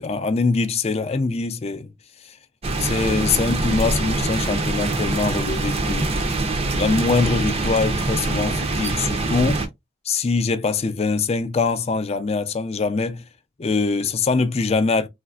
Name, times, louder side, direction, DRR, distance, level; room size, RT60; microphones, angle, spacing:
voice 1, 0.0-1.9 2.3-2.4 2.8-6.2 6.8-9.6 10.1-13.2 13.6-15.1, left 4 dB, 35° left, 0.4 m, -23 dB
sound 1, 2.6-9.7, right 2 dB, 35° right, 0.5 m, -24 dB
3.1 x 2.5 x 2.3 m
head